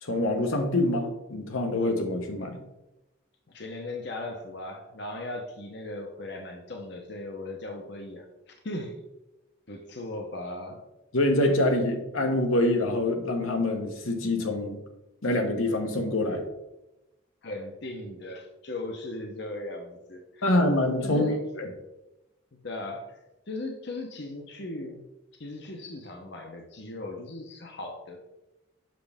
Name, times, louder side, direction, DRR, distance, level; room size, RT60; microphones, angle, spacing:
voice 1, 0.0-2.6 11.1-14.8 15.2-16.4 20.4-21.3 21.6-21.7, left 1 dB, 90° left, 3 dB, 1.2 m, -25 dB
voice 2, 3.5-9.0 9.7-10.8 17.4-20.5 21.0-21.4 22.6-23.2 23.5-25.0 25.4-28.2, left 2 dB, 55° left, 3 dB, 0.9 m, -38 dB
7.6 x 6.1 x 3.5 m, 0.94 s
head